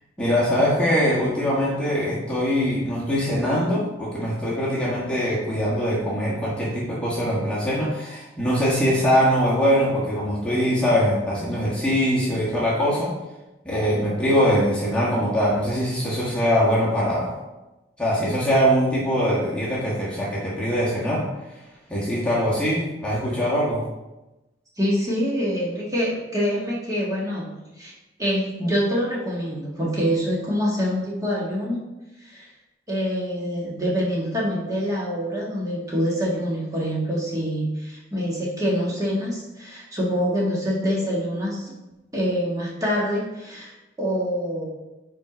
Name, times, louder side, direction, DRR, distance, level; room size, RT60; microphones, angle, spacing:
voice 1, 0.2-13.1 13.6-17.4 18.0-21.2 21.9-23.8, equal, 5° left, -7 dB, 1.4 m, -22 dB
voice 2, 24.8-27.5 27.8-27.9 28.2-31.8 32.2-32.5 32.9-41.7 42.1-44.7, equal, 20° right, -5 dB, 1.6 m, -25 dB
5.7 x 4.6 x 4.9 m, 1.0 s
head